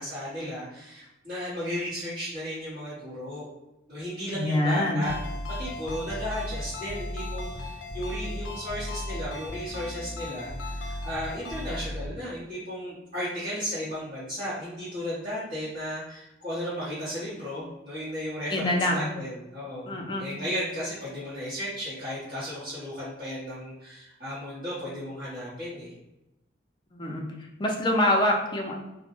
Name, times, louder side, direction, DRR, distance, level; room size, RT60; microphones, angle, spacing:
voice 1, 0.0-3.5 3.9-5.2 5.5-25.9, equal, 45° right, -11 dB, 0.9 m, -35 dB
voice 2, 4.3-5.0 18.5-19.1 19.9-20.3 26.9-27.3 27.6-28.7, left 1 dB, 25° left, 0 dB, 0.4 m, -25 dB
Ringtone, 5.0-11.9, left 5 dB, 85° left, 0.4 m, -41 dB
sound 1, 5.1-12.1, equal, 75° right, 0.7 m, -36 dB
2.1 x 2.1 x 2.9 m, 0.94 s
head